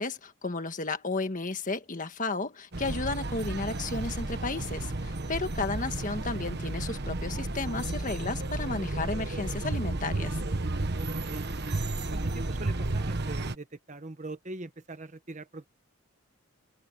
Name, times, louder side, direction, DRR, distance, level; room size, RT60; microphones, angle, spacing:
voice 1, 0.0-10.4, left 3 dB, 35° left, 1.7 m, -33 dB
sound 1, 2.7-13.5, right 2 dB, 50° right, 1.3 m, -32 dB
voice 2, 10.9-11.5 12.1-15.6, right 2 dB, 35° right, 1.1 m, -42 dB
head